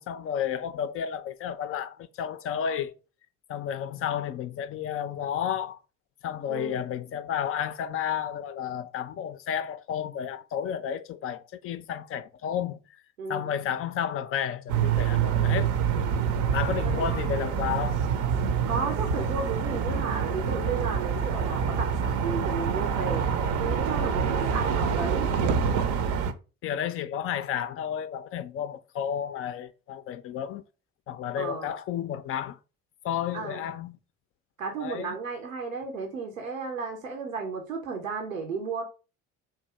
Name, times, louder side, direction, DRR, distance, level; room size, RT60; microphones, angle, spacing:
voice 1, 0.0-2.9 3.5-5.8 6.2-12.8 13.3-15.7 16.5-18.0 26.6-30.6 31.1-32.6 33.0-34.0 34.8-35.2, left 9 dB, 35° left, 0.4 m, -32 dB
voice 2, 6.5-6.8 13.2-13.5 16.2-16.4 16.8-17.1 18.7-23.3 23.6-25.3 31.4-31.7 33.3-33.6 34.6-38.8, right 4 dB, 80° right, 0.8 m, -33 dB
sound 1, 14.7-26.3, right 7 dB, 45° right, 0.6 m, -26 dB
3.6 x 2.6 x 4.3 m
figure-of-eight pair, 55°, 39 cm